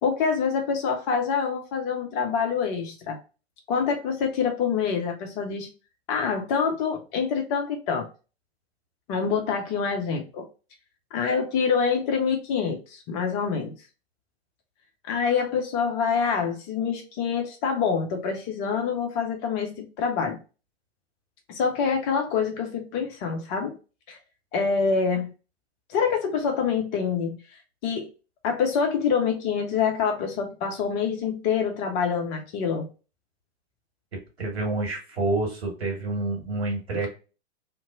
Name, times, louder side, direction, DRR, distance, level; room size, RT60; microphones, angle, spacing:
voice 1, 0.0-3.2 3.7-5.7 6.1-8.1 9.1-10.4 11.1-13.7 15.1-20.4 21.5-23.8 24.1-24.2 24.5-25.3 25.9-27.4 27.8-28.1 28.4-32.9, left 6 dB, 20° left, 3 dB, 0.4 m, -26 dB
voice 2, 34.4-37.1, right 2 dB, 70° right, 1 dB, 1.5 m, -28 dB
2.8 x 2.5 x 2.4 m, 0.33 s
figure-of-eight pair, 105°, 32 cm